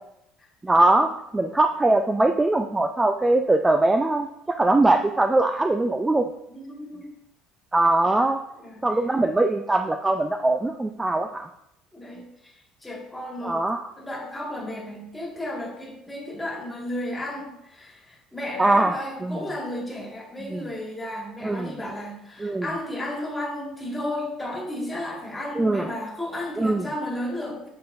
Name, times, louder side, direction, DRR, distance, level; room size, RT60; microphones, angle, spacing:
voice 1, 0.6-6.2 7.7-8.4 8.8-11.5 13.4-13.8 18.6-18.9 19.2-19.4 20.5-20.7 21.4-21.7 22.4-22.7 25.6-25.9 26.6-26.9, right 2 dB, 15° right, 6 dB, 0.3 m, -21 dB
voice 2, 6.5-7.1 8.6-9.0 11.9-13.6 14.0-27.7, left 1 dB, 10° left, -2 dB, 1.8 m, -33 dB
7.8 x 5.5 x 2.6 m, 0.81 s
cardioid pair, 120°, 0 cm